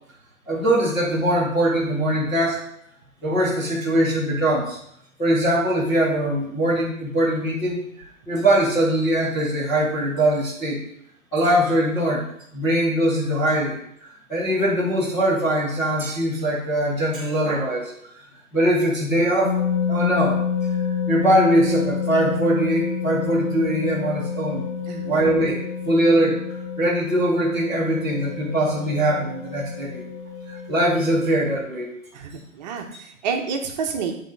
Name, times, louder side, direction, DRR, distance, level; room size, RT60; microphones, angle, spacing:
voice 1, 0.5-2.6 3.2-4.8 5.2-7.8 8.3-10.8 11.3-12.3 12.5-13.8 14.0-17.9 18.5-19.6 19.9-20.4 21.1-24.6 25.0-26.4 26.8-30.1 30.5-31.9, right 1 dB, 5° left, -12 dB, 0.4 m, -21 dB
sound 1, 19.4-31.6, left 6 dB, 60° left, 1.3 m, -28 dB
voice 2, 32.1-34.2, right 5 dB, 30° right, 4 dB, 1.0 m, -29 dB
7.9 x 3.8 x 5.4 m, 0.73 s
figure-of-eight pair, 125°, 40 cm